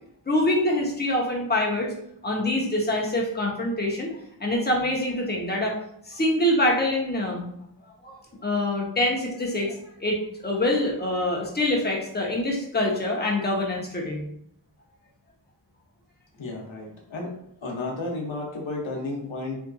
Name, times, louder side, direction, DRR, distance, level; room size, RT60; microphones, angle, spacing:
voice 1, 0.3-1.9 2.2-4.1 4.4-5.8 6.1-7.5 8.0-14.2, left 1 dB, 20° left, -2 dB, 0.7 m, -25 dB
voice 2, 16.4-17.3 17.6-19.6, left 2 dB, 85° left, -1 dB, 0.8 m, -32 dB
2.7 x 2.4 x 2.3 m, 0.72 s
wide cardioid pair, 55°, 46 cm